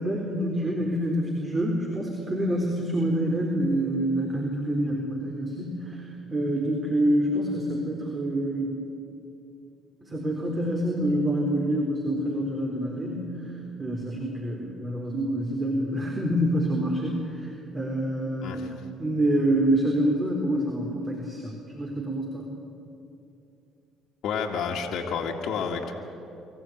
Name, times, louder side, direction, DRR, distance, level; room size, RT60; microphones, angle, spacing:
voice 1, 0.0-8.7 10.0-18.6 19.0-22.5, right 1 dB, 30° right, 0 dB, 4.0 m, -27 dB
voice 2, 24.2-25.9, left 6 dB, 70° left, 1 dB, 2.1 m, -30 dB
25.0 x 14.5 x 9.4 m, 2.7 s
hypercardioid pair, 60°, 0 cm